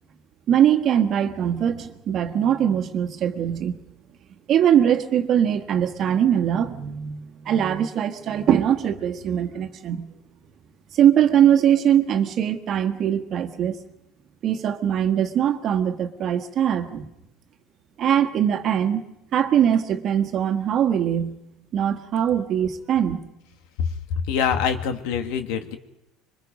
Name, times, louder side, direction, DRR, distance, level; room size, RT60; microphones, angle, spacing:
voice 1, 0.5-3.8 4.5-10.1 10.9-13.8 14.4-17.1 18.0-19.0 19.3-21.4 21.7-23.2, right 9 dB, 40° right, 7 dB, 1.6 m, -21 dB
voice 2, 24.3-25.8, left 7 dB, 75° left, 7 dB, 2.1 m, -24 dB
26.0 x 23.0 x 5.4 m, 0.89 s
cardioid pair, 155°, 0 cm